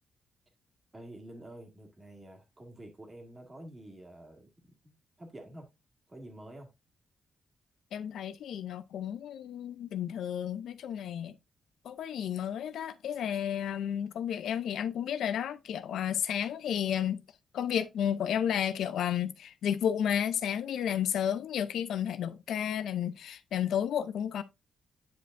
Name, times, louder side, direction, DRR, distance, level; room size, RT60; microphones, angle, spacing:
voice 1, 0.9-4.5 4.8-5.7 6.1-6.7, right 1 dB, 25° right, 2.0 m, -48 dB
voice 2, 7.9-11.3 11.8-17.2 17.5-24.4, left 9 dB, 85° left, 0.5 m, -32 dB
9.1 x 5.1 x 2.5 m
cardioid pair, 110°, 0 cm